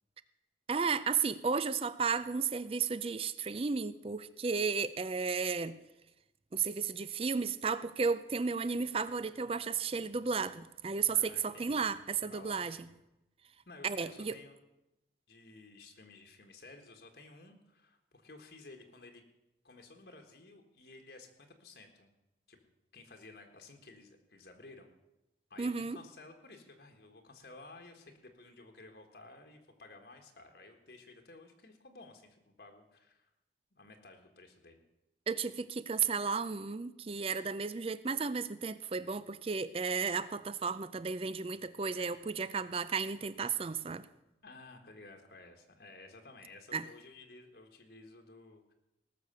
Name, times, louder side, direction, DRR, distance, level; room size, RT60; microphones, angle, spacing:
voice 1, 0.7-5.8 6.5-12.8 13.8-14.4 25.6-26.0 35.3-44.0 46.7-46.9, right 5 dB, 30° right, 15 dB, 0.4 m, -33 dB
voice 2, 11.1-11.9 12.3-12.8 13.6-14.6 15.3-19.2 19.6-22.1 22.5-22.6 22.9-24.9 25.5-33.3 33.7-34.8 44.4-48.7, left 3 dB, 60° left, 4 dB, 1.5 m, -54 dB
18.5 x 6.6 x 6.8 m, 0.92 s
head